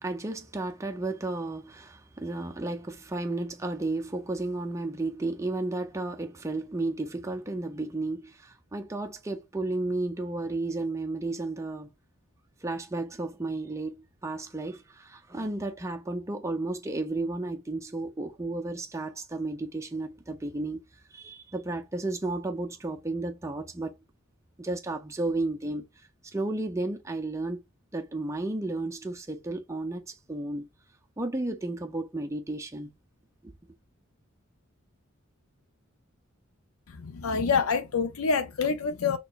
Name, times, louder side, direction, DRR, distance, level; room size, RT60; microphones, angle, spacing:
voice 1, 0.0-11.9 12.6-13.9 14.2-20.8 21.1-23.9 24.6-25.9 26.3-27.6 27.9-30.7 31.2-32.9 33.4-33.5, right 2 dB, 15° right, 0.6 m, -33 dB
voice 2, 37.0-39.2, left 5 dB, 85° left, 0.6 m, -26 dB
4.3 x 3.1 x 2.5 m
head